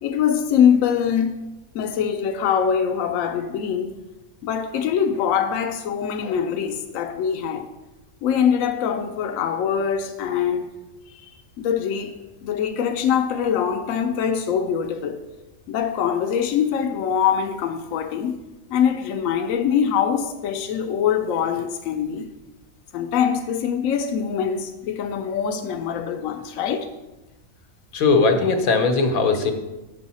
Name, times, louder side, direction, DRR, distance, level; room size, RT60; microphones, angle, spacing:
voice 1, 0.0-1.4 1.7-3.9 4.4-7.7 8.2-10.7 11.1-15.2 15.7-18.4 18.7-22.2 22.9-26.9, left 8 dB, 75° left, 0.9 m, -23 dB
voice 2, 27.9-29.5, left 4 dB, 90° left, 1.3 m, -19 dB
7.5 x 5.4 x 4.1 m
omnidirectional pair, 1.5 m